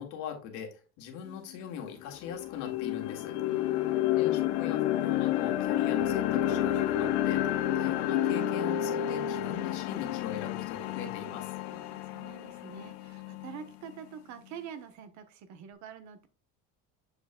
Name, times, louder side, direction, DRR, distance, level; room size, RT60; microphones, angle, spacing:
voice 1, 0.0-3.4 4.2-11.5, left 7 dB, 60° left, 3 dB, 1.8 m, -41 dB
sound 1, 1.3-1.4 1.8-13.9, left 12 dB, 75° left, 0.7 m, -30 dB
voice 2, 3.5-4.1 11.7-16.3, right 7 dB, 55° right, 9 dB, 1.0 m, -46 dB
7.3 x 6.7 x 2.2 m, 0.32 s
cardioid pair, 170°, 34 cm